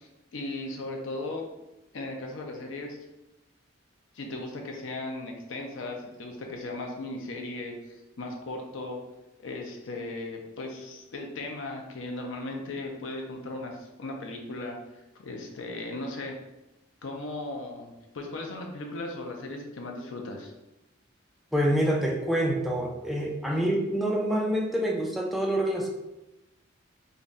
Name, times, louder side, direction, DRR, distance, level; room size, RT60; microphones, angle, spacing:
voice 1, 0.0-1.5 1.9-3.0 4.1-9.0 9.4-16.3 17.0-20.5 23.5-23.7, left 2 dB, 75° left, 1 dB, 0.5 m, -37 dB
voice 2, 21.5-25.9, right 1 dB, ahead, -1 dB, 0.3 m, -26 dB
3.8 x 2.2 x 2.5 m, 0.96 s
head